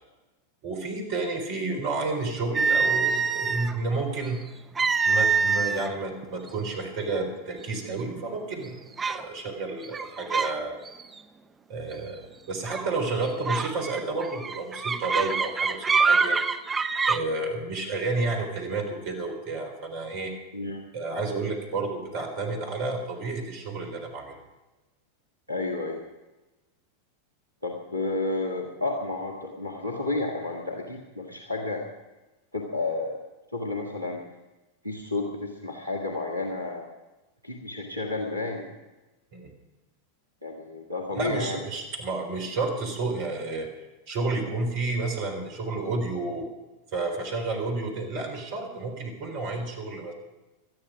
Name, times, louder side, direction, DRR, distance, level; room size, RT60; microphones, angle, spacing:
voice 1, 0.6-4.4 5.0-8.8 9.1-10.8 11.7-16.4 17.1-20.3 20.9-24.4 39.3-39.5 41.1-43.7 44.1-46.5 46.9-50.1, right 3 dB, 45° right, 3 dB, 4.1 m, -31 dB
sound 1, 2.5-3.7 4.8-5.9 6.2-6.5 7.2-7.3 7.8-8.2 9.0-9.2 9.8-10.6 10.9-11.2 12.7-12.9 13.4-17.2, right 5 dB, 15° right, 0.8 m, -25 dB
voice 2, 25.5-26.0 27.6-31.8 32.5-33.2 33.5-34.2 34.8-36.9 37.4-38.7 40.4-41.6, left 2 dB, 85° right, 2 dB, 1.9 m, -31 dB
19.5 x 13.0 x 4.9 m, 1.1 s
figure-of-eight pair, 90°, 0 cm